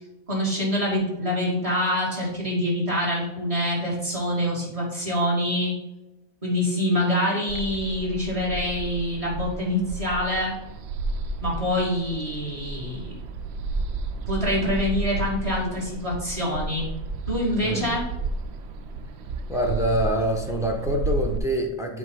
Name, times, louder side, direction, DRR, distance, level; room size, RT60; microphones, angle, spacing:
voice 1, 0.3-5.8 6.4-10.5 11.4-13.2 14.3-16.9 17.3-18.1, left 1 dB, 20° right, -5 dB, 2.7 m, -25 dB
sound 1, 7.5-21.4, right 2 dB, 65° right, 0.7 m, -32 dB
voice 2, 17.6-18.0 19.5-22.0, right 1 dB, 5° right, 2 dB, 0.6 m, -25 dB
8.0 x 3.0 x 5.6 m, 1.0 s
omnidirectional pair, 1.5 m